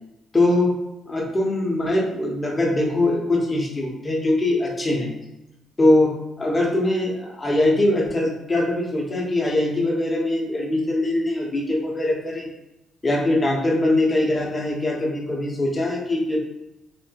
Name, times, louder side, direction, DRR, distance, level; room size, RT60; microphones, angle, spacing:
voice 1, 0.3-0.7 1.1-5.1 5.8-12.5 13.0-16.4, left 1 dB, 25° left, -2 dB, 0.9 m, -22 dB
3.0 x 2.7 x 2.9 m, 0.93 s
cardioid pair, 90°, 0 cm